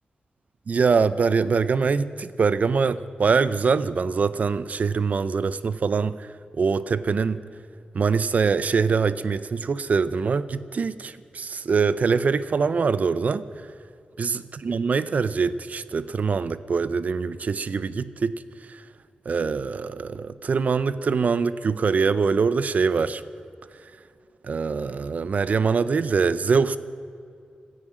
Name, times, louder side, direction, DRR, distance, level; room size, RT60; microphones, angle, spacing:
voice 1, 0.7-6.3 6.6-7.5 7.9-13.5 14.2-18.4 18.7-18.8 19.3-23.2 24.4-26.8, right 5 dB, 55° right, 15 dB, 0.6 m, -23 dB
17.0 x 13.5 x 6.2 m, 2.4 s
wide cardioid pair, 135°, 3 cm